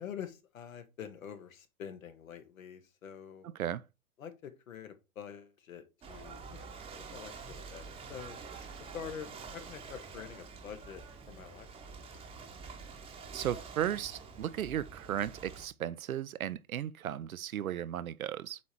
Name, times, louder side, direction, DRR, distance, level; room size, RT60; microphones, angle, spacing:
voice 1, 0.0-3.5 4.2-8.4 8.8-11.7, left 8 dB, 65° left, 1.6 m, -46 dB
Ocean / Boat Water vehicle, 6.0-15.7, right 5 dB, 15° right, 1.0 m, -47 dB
voice 2, 13.3-18.6, right 10 dB, 70° right, 0.7 m, -35 dB
8.4 x 3.5 x 4.4 m
figure-of-eight pair, 115°, 44 cm